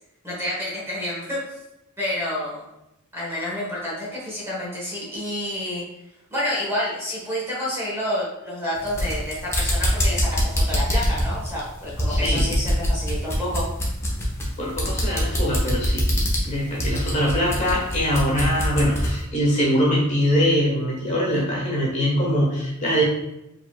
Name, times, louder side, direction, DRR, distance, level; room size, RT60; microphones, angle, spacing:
voice 1, 0.2-1.4 2.0-2.6 3.1-5.8 6.3-13.7, left 1 dB, 10° right, -6 dB, 1.3 m, -29 dB
sound 1, 8.8-19.2, equal, 15° left, 0.8 m, -24 dB
voice 2, 12.1-12.5 14.6-16.1 16.4-23.0, equal, 35° left, -4 dB, 1.3 m, -22 dB
5.0 x 3.5 x 2.4 m, 0.91 s
head